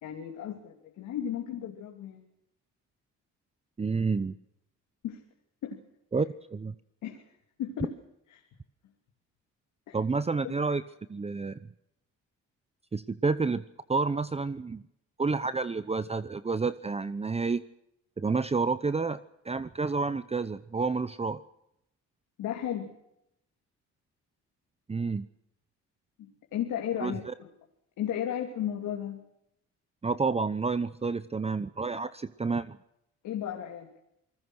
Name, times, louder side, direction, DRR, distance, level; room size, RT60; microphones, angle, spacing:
voice 1, 0.0-2.3 5.0-5.2 5.6-5.8 7.0-7.2 7.6-7.9 8.3-8.4 9.9-10.0 10.4-10.8 22.4-22.9 26.2-27.5 28.0-29.2 33.2-33.9, left 10 dB, 85° left, 2 dB, 3.1 m, -34 dB
voice 2, 3.8-4.3 6.1-6.3 6.5-6.7 9.9-10.8 11.1-11.6 12.9-13.6 13.9-14.8 15.2-17.6 18.2-21.4 24.9-25.3 27.0-27.3 30.0-32.8, right 4 dB, 20° right, 14 dB, 0.8 m, -29 dB
27.5 x 20.0 x 6.4 m, 0.80 s
cardioid pair, 90°, 30 cm